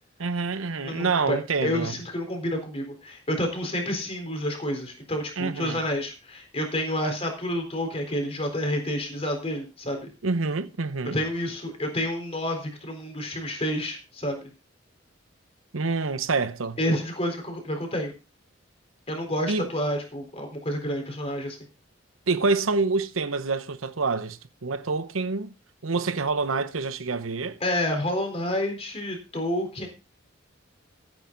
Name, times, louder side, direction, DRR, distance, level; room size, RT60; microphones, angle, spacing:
voice 1, 0.2-1.9 5.4-5.8 10.2-11.2 15.7-16.8 19.5-19.7 22.3-25.5 25.8-27.6, right 4 dB, 90° right, 0.9 m, -27 dB
voice 2, 0.8-10.1 11.0-14.5 16.8-18.1 19.1-21.6 27.6-29.9, left 1 dB, 30° left, 3.9 m, -29 dB
15.0 x 9.1 x 3.9 m
head